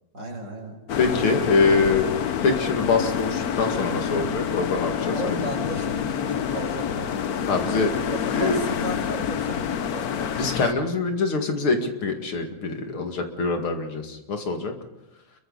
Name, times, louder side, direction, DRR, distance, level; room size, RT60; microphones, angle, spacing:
voice 1, 0.1-0.8 5.1-7.2 8.0-10.3, right 1 dB, 35° right, 1 dB, 5.4 m, -34 dB
sound 1, 0.9-10.7, left 8 dB, 55° left, 1.1 m, -27 dB
voice 2, 1.0-2.1 2.4-5.4 7.5-7.9 8.3-8.6 10.4-14.7, left 4 dB, 80° left, 4 dB, 3.0 m, -24 dB
28.5 x 23.0 x 4.1 m, 0.92 s
omnidirectional pair, 2.3 m